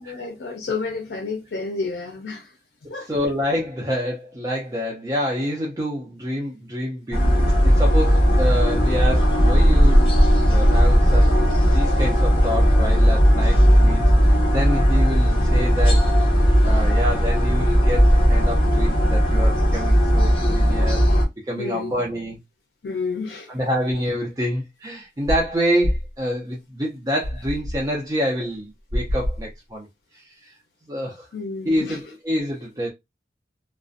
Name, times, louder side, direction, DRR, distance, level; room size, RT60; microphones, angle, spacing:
voice 1, 0.0-2.5 2.9-3.1 21.6-22.0 22.8-23.5 31.3-32.0, left 4 dB, 70° left, 0.5 m, -30 dB
voice 2, 3.1-7.2 7.6-10.2 10.5-21.0 21.5-22.4 23.5-29.9 30.1-30.5 30.9-31.3 31.6-32.9, equal, 20° right, 0.4 m, -27 dB
sound 1, 7.1-21.2, equal, 30° left, 0.7 m, -17 dB
sound 2, 25.3-25.5 25.8-26.1 27.2-27.8 28.9-29.5, equal, 45° right, 0.8 m, -25 dB
2.4 x 2.0 x 2.4 m
head